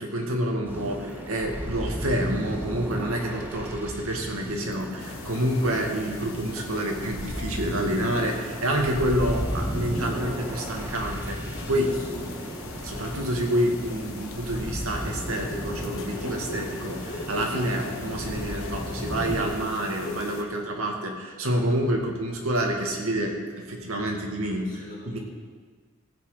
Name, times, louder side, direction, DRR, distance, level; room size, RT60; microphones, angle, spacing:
voice 1, 0.0-12.0 12.8-24.8 25.1-25.2, right 1 dB, 85° right, 1 dB, 2.0 m, -28 dB
sound 1, 0.6-19.4, equal, 10° right, 1.5 m, -35 dB
sound 2, 5.0-20.4, left 3 dB, 75° left, 1.2 m, -39 dB
voice 2, 11.8-12.8 24.6-25.2, equal, 45° left, -5 dB, 4.7 m, -42 dB
16.5 x 8.6 x 5.0 m, 1.5 s
head